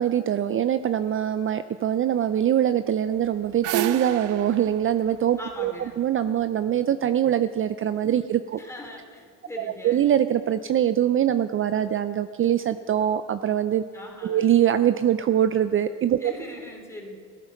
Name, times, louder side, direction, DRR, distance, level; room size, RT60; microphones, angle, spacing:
voice 1, 0.0-8.6 9.6-13.8 14.2-16.3, right 10 dB, 45° right, 11 dB, 0.5 m, -23 dB
sound 1, 3.1-6.3, right 11 dB, 90° right, 0.6 m, -32 dB
voice 2, 5.4-5.9 8.2-10.1 13.9-14.5 16.2-17.2, left 1 dB, 10° left, 0 dB, 3.2 m, -41 dB
16.0 x 9.4 x 5.9 m, 2.3 s
cardioid pair, 90°, 30 cm